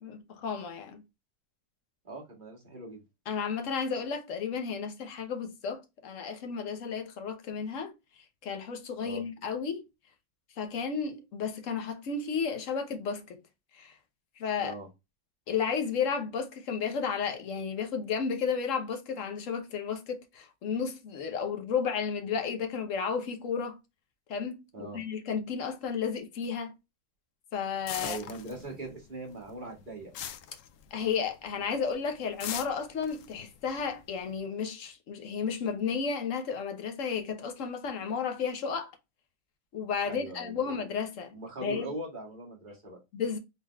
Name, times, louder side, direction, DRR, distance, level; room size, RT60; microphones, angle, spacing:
voice 1, 0.0-1.0 3.3-7.9 8.4-9.8 10.6-13.4 13.7-13.9 14.4-14.8 15.5-23.8 24.3-26.7 27.5-28.2 30.9-38.9 39.7-41.3 41.6-41.9 43.1-43.4, left 6 dB, 55° left, 1.1 m, -33 dB
voice 2, 2.1-3.0 9.0-9.2 14.6-14.9 24.7-25.0 28.0-30.1 40.0-40.8 41.3-43.0, right 2 dB, 30° right, 1.6 m, -41 dB
sound 1, 27.9-29.0 29.3-31.3 31.6-31.9 32.4-34.3, left 10 dB, 75° left, 0.7 m, -40 dB
4.1 x 3.9 x 2.3 m
omnidirectional pair, 1.9 m